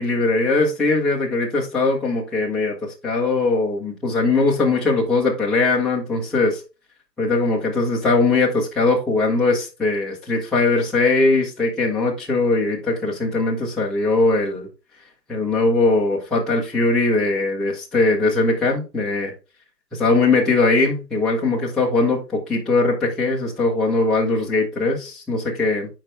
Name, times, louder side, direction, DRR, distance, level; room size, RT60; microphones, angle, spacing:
voice 1, 0.0-6.6 7.2-14.7 15.3-19.3 19.9-25.9, left 3 dB, ahead, -6 dB, 0.6 m, -20 dB
9.4 x 4.5 x 3.1 m, 0.30 s
hypercardioid pair, 145°, 49 cm